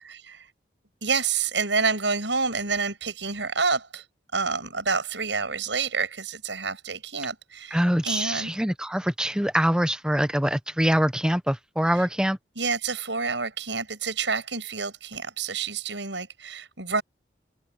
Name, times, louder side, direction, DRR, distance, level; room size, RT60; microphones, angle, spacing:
voice 1, 0.0-0.5 1.0-4.0 4.3-8.5 11.9-12.1 12.6-17.0, right 4 dB, 80° right, 7.1 m, -28 dB
voice 2, 7.7-12.4, equal, 5° right, 0.9 m, -24 dB
head